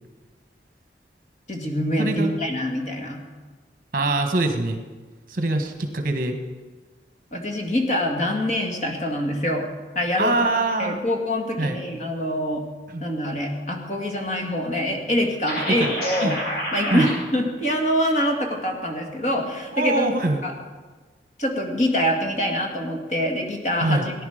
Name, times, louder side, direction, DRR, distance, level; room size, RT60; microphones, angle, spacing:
voice 1, 1.5-3.2 7.3-9.7 10.0-10.3 10.8-12.6 13.0-16.4 16.7-20.1 20.4-20.5 21.4-24.1, equal, 40° left, 2 dB, 2.1 m, -25 dB
voice 2, 2.0-2.3 3.9-4.8 5.3-6.4 10.2-11.0 11.6-11.8 12.9-13.0 15.7-16.3 16.9-17.1 19.7-20.4 23.8-24.1, right 2 dB, 50° right, 5 dB, 1.5 m, -23 dB
sound 1, 15.5-17.1, equal, 60° left, 5.4 m, -28 dB
18.5 x 10.5 x 5.1 m, 1.3 s
head